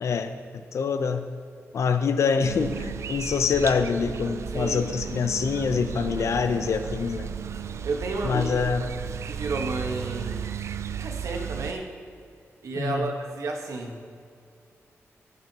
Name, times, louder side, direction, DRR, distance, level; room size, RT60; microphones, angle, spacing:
voice 1, 0.0-0.3 0.7-1.3 1.7-7.3 8.2-8.9 12.8-13.1, left 5 dB, 70° left, 9 dB, 0.6 m, -25 dB
sound 1, 2.4-11.7, right 7 dB, 65° right, 0.4 m, -34 dB
voice 2, 4.5-5.3 7.8-8.9 9.2-10.4 11.0-11.9 12.6-14.0, right 3 dB, 85° right, 2 dB, 1.2 m, -32 dB
12.0 x 10.5 x 2.9 m, 2.3 s
wide cardioid pair, 145°, 5 cm